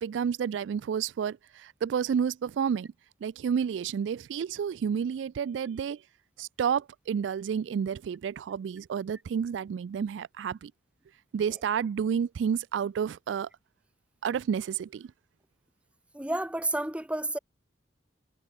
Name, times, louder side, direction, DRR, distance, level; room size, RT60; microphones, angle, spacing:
voice 1, 0.0-2.9 3.2-6.0 6.4-10.7 11.3-13.5 14.2-15.1, right 7 dB, 90° right, 0.3 m, -30 dB
voice 2, 16.1-17.4, right 1 dB, 5° right, 0.9 m, -30 dB
head